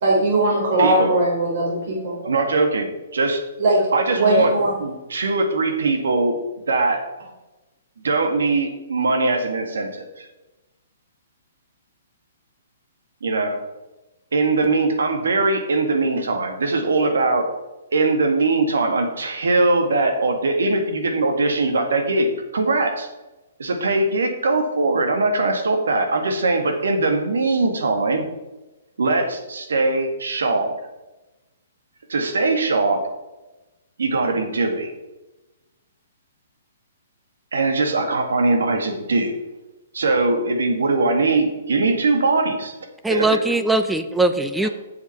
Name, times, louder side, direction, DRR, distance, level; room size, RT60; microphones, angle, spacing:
voice 1, 0.0-2.2 3.6-3.8 4.2-4.7, right 1 dB, 60° right, -4 dB, 3.7 m, -19 dB
voice 2, 0.8-1.1 2.2-3.4 3.9-4.5 4.8-6.4 6.7-7.0 8.0-10.3 13.2-13.6 14.3-17.5 17.9-23.1 23.6-28.2 29.0-30.7 32.1-33.0 34.0-34.9 37.5-39.3 39.9-42.7 43.1-43.4, right 3 dB, 85° right, 5 dB, 2.0 m, -21 dB
voice 3, 43.0-44.7, right 2 dB, 5° right, 9 dB, 0.5 m, -20 dB
8.0 x 7.2 x 5.9 m, 1.1 s
hypercardioid pair, 140°, 0 cm